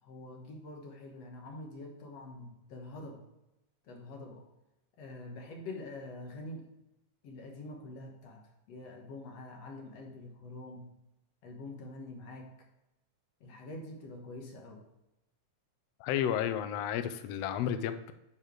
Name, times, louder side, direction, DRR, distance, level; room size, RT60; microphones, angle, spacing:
voice 1, 0.0-3.2 3.9-4.5 5.0-6.7 7.2-11.0 11.4-12.5 13.4-14.8, left 2 dB, 60° left, 1 dB, 2.1 m, -45 dB
voice 2, 16.0-18.1, left 9 dB, 90° left, 10 dB, 1.4 m, -32 dB
10.0 x 4.6 x 4.5 m, 0.91 s
omnidirectional pair, 3.6 m